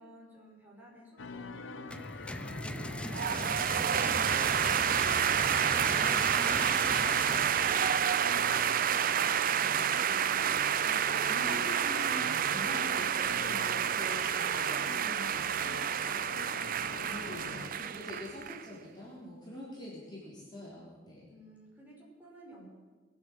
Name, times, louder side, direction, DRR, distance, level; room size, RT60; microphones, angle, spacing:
voice 1, 0.0-10.2 15.9-18.1 21.3-22.7, right 1 dB, 10° right, -5 dB, 5.6 m, -53 dB
sound 1, 1.2-17.7, left 3 dB, 80° left, 0.8 m, -45 dB
sound 2, 1.9-9.7, left 1 dB, 5° left, 0.6 m, -39 dB
sound 3, 3.1-18.6, right 9 dB, 50° right, 0.5 m, -29 dB
voice 2, 10.9-15.8 17.1-21.3, left 1 dB, 25° left, -6 dB, 4.0 m, -44 dB
23.0 x 8.0 x 7.5 m, 1.3 s
head